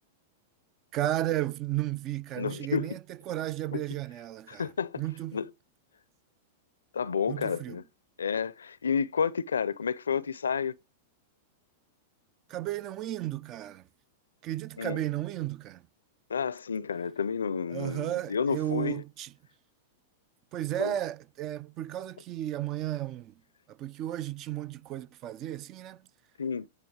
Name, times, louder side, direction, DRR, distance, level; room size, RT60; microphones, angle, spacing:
voice 1, 0.9-3.0 3.3-4.7 5.0-5.4 7.3-7.8 12.5-13.8 14.4-15.8 17.7-19.3 20.5-23.3 23.7-26.0, right 13 dB, 40° right, 0.4 m, -33 dB
voice 2, 2.4-2.9 3.7-3.8 4.5-5.0 5.3-5.5 6.9-7.8 8.2-10.7 14.8-15.0 16.3-19.0 20.8-20.9 26.4-26.7, left 6 dB, 85° left, 0.5 m, -30 dB
9.3 x 3.1 x 4.8 m
hypercardioid pair, 110°, 0 cm